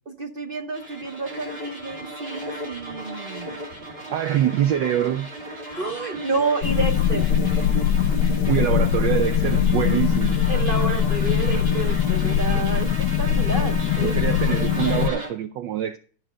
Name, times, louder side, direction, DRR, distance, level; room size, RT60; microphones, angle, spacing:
voice 1, 0.2-3.6 5.7-7.2 10.5-14.2 14.9-15.0, right 4 dB, 50° right, 0.6 m, -29 dB
sound 1, 0.7-15.3, right 1 dB, 30° right, 2.5 m, -35 dB
voice 2, 4.1-5.3 8.5-10.4 14.0-16.0, right 11 dB, 70° right, 1.2 m, -24 dB
sound 2, 6.6-15.1, left 9 dB, 70° left, 1.2 m, -21 dB
13.0 x 6.2 x 5.0 m
omnidirectional pair, 2.2 m